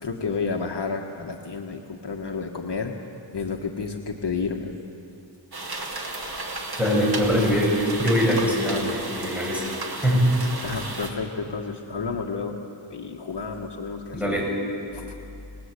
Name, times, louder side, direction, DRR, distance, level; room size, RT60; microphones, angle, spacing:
voice 1, 0.0-2.9 3.3-4.8 5.9-6.0 10.6-12.6 12.9-14.2 14.9-15.2, left 4 dB, 60° left, 2 dB, 1.6 m, -31 dB
sound 1, 5.5-11.1, right 2 dB, 55° right, 2.7 m, -33 dB
voice 2, 6.8-9.7 10.0-10.4 14.1-14.5, equal, 5° right, -3 dB, 7.8 m, -22 dB
29.0 x 20.0 x 8.3 m, 2.7 s
wide cardioid pair, 115°, 46 cm